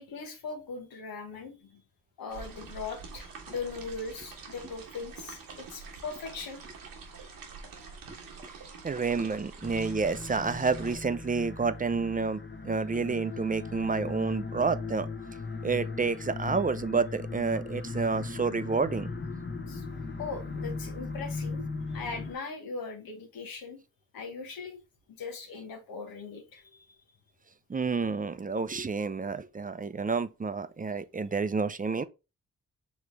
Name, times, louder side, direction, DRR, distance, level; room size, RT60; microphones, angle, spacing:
voice 1, 0.0-1.8 2.2-6.6 19.7-19.9 20.2-21.6 21.9-23.8 24.1-24.8 25.1-26.9, left 4 dB, 85° left, 1.2 m, -40 dB
sound 1, 2.3-11.0, right 4 dB, 90° right, 1.1 m, -46 dB
voice 2, 8.8-15.1 15.6-19.1 27.7-32.0, right 4 dB, 25° right, 0.5 m, -29 dB
sound 2, 9.6-22.3, left 3 dB, 35° left, 0.9 m, -38 dB
5.0 x 3.2 x 3.2 m
supercardioid pair, 40°, 34 cm